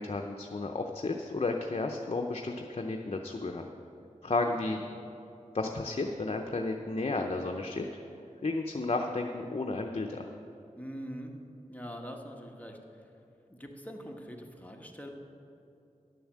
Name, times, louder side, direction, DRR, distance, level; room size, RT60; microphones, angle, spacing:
voice 1, 0.0-3.7 4.2-4.8 5.5-7.9 8.4-10.2, left 3 dB, 50° left, 3 dB, 0.7 m, -32 dB
voice 2, 4.2-4.8 10.8-11.3 11.7-13.1 13.5-15.1, equal, 10° left, 1 dB, 1.4 m, -44 dB
11.0 x 7.0 x 7.3 m, 2.7 s
wide cardioid pair, 50°, 13 cm